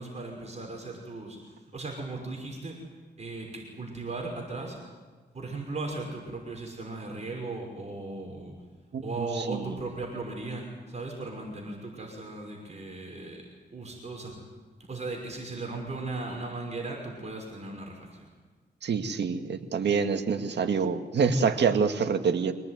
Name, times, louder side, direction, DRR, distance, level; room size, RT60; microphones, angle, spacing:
voice 1, 0.0-2.8 3.2-4.8 5.3-8.5 9.0-13.4 13.7-14.3 14.9-18.3, right 3 dB, 40° right, 1 dB, 5.9 m, -37 dB
voice 2, 8.9-9.8 18.8-22.5, right 5 dB, 75° right, 6 dB, 2.0 m, -26 dB
25.0 x 18.5 x 9.5 m, 1.4 s
cardioid pair, 85°, 18 cm